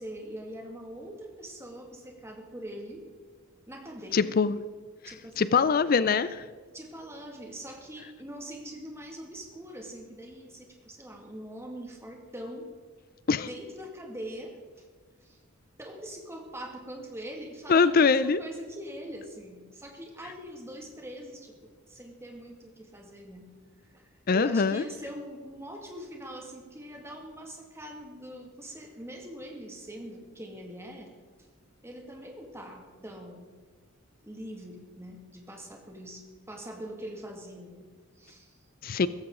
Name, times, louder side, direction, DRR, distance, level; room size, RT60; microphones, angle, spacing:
voice 1, 0.0-3.1 3.7-4.3 5.0-5.7 6.7-12.7 13.4-14.9 15.2-15.4 15.8-23.6 23.9-31.1 31.8-33.5 34.2-38.7, equal, 15° right, 1 dB, 2.1 m, -43 dB
voice 2, 4.1-4.6 5.4-6.4 13.3-13.5 17.7-18.4 24.3-24.8 38.8-39.1, left 5 dB, 45° left, 16 dB, 0.4 m, -23 dB
16.5 x 14.5 x 3.8 m, 1.5 s
head